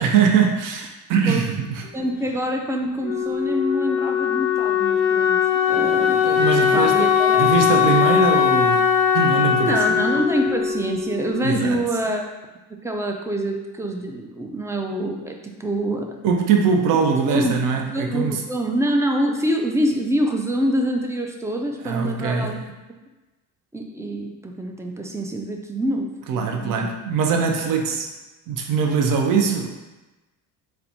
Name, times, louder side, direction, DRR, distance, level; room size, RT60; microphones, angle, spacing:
voice 1, 0.0-1.8 6.2-9.8 11.4-11.8 16.2-18.4 21.8-22.5 26.3-28.1 28.5-29.7, right 6 dB, 50° right, 3 dB, 0.6 m, -22 dB
voice 2, 1.9-5.4 5.7-6.3 6.7-7.5 9.6-12.2 12.8-16.2 17.3-17.6 17.9-22.6 23.7-26.9, right 1 dB, 10° right, 3 dB, 0.4 m, -25 dB
Wind instrument woodwind instrument, 3.0-11.7, left 8 dB, 80° left, 0.6 m, -20 dB
4.1 x 2.2 x 2.8 m, 1.1 s
supercardioid pair, 70°, 40 cm